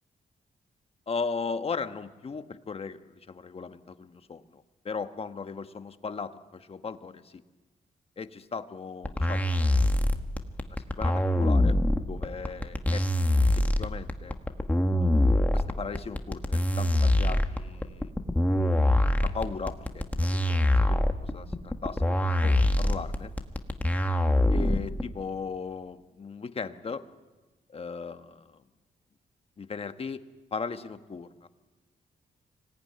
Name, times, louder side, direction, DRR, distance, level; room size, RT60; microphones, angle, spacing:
voice 1, 1.1-7.4 8.2-10.2 10.7-11.8 12.1-14.3 15.0-18.1 19.0-20.1 20.5-23.3 24.5-27.0 27.7-28.6 29.6-30.2 30.5-31.5, left 5 dB, 40° left, 9 dB, 1.2 m, -37 dB
sound 1, 9.0-25.0, left 1 dB, 10° left, 1.5 m, -24 dB
25.0 x 18.5 x 9.6 m, 1.2 s
cardioid pair, 110°, 15 cm